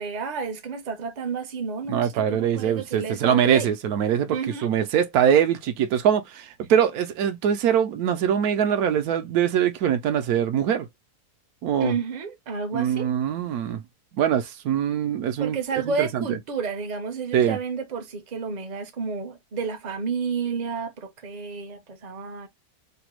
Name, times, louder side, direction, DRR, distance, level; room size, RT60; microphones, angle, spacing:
voice 1, 0.0-3.7 4.3-4.7 11.8-13.1 15.4-22.5, right 5 dB, 45° right, 0.6 m, -31 dB
voice 2, 1.9-10.9 11.6-11.9 12.7-13.8 14.2-15.6 16.0-16.4 17.3-17.6, right 9 dB, 75° right, 1.0 m, -23 dB
3.3 x 2.2 x 3.0 m
omnidirectional pair, 1.7 m